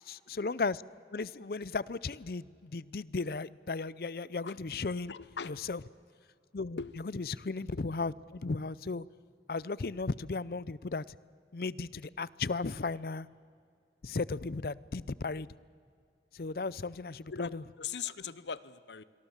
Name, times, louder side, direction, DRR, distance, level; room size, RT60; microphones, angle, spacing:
voice 1, 0.1-0.8 1.1-5.1 5.4-5.8 6.5-9.1 9.5-11.2 11.5-13.3 14.0-15.5 16.3-17.6, left 3 dB, 55° left, 0.5 m, -35 dB
voice 2, 5.1-5.6 6.8-6.9 17.3-19.0, left 6 dB, 80° left, 0.8 m, -40 dB
26.5 x 22.5 x 7.3 m
head